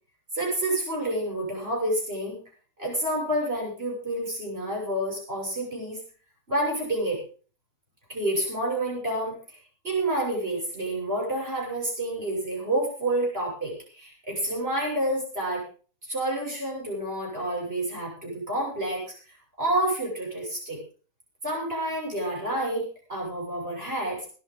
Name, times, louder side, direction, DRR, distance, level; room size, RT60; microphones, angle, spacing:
voice 1, 0.3-2.4 2.8-6.0 6.5-7.2 8.1-15.6 16.1-19.1 19.6-20.8 21.4-24.3, right 1 dB, 35° right, -2 dB, 7.8 m, -29 dB
22.0 x 10.5 x 4.0 m, 0.39 s
omnidirectional pair, 1.9 m